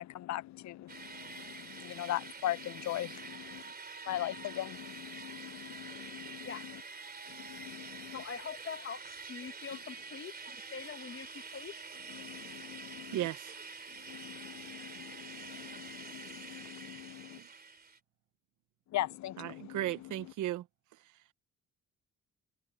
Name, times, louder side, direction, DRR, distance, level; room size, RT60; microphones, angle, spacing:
voice 1, 0.0-3.6 4.1-6.7 7.3-8.2 12.1-13.2 14.1-17.4 18.9-20.1, left 14 dB, 65° left, 0.6 m, -40 dB
sound 1, 0.9-18.0, right 4 dB, 30° right, 3.3 m, -47 dB
voice 2, 8.1-11.7, left 6 dB, 40° left, 1.5 m, -44 dB
voice 3, 13.1-13.6 17.4-17.5 19.4-20.6, right 14 dB, 80° right, 1.1 m, -35 dB
cardioid pair, 90°, 30 cm